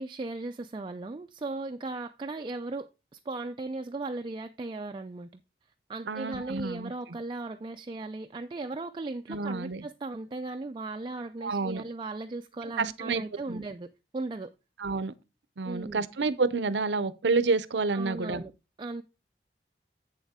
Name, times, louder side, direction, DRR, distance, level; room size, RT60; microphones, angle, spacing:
voice 1, 0.0-5.4 5.9-13.9 14.1-14.5 15.6-16.1 17.9-18.5 18.8-19.0, right 2 dB, 30° right, 0.3 m, -37 dB
voice 2, 6.1-6.9 9.3-9.8 11.4-11.8 12.8-13.6 14.8-15.1 15.6-18.4, right 4 dB, 85° right, 0.6 m, -29 dB
8.1 x 7.2 x 3.6 m
head